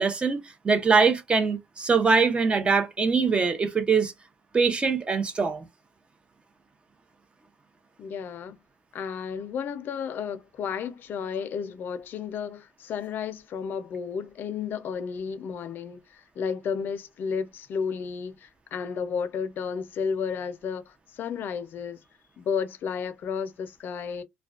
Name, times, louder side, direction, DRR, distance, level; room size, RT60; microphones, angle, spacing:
voice 1, 0.0-4.1 4.5-5.7, right 5 dB, 25° right, 0.7 m, -23 dB
voice 2, 8.0-8.6 8.9-22.0 22.4-24.2, left 6 dB, 55° left, 0.5 m, -32 dB
2.3 x 2.2 x 2.4 m
cardioid pair, 90°, 4 cm